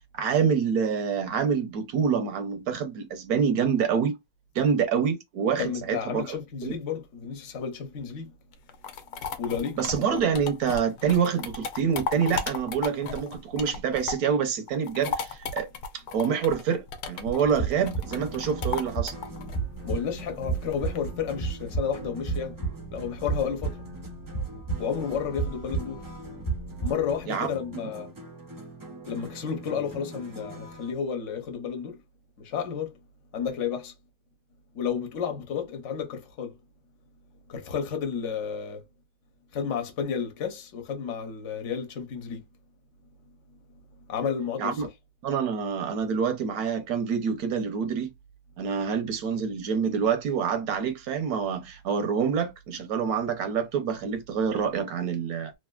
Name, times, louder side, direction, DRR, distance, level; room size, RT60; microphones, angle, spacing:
voice 1, 0.1-4.2 4.5-6.7 9.8-15.7 16.1-19.1 27.3-27.5 44.6-44.9 45.2-48.1 48.6-55.5, right 6 dB, 80° right, 1.2 m, -26 dB
voice 2, 5.6-8.3 9.4-9.8 19.8-22.6 22.9-23.8 24.8-26.0 26.8-28.1 29.1-32.0 32.4-33.0 33.3-33.9 34.7-36.6 37.5-38.8 39.5-42.5 44.1-44.8, left 7 dB, 60° left, 1.1 m, -31 dB
sound 1, 8.5-14.4 14.7-21.0, left 5 dB, 90° left, 1.1 m, -35 dB
sound 2, 17.6-27.2, right 4 dB, 40° left, 0.7 m, -33 dB
sound 3, 17.8-30.9, equal, 35° right, 0.3 m, -44 dB
3.3 x 2.5 x 2.2 m
omnidirectional pair, 1.6 m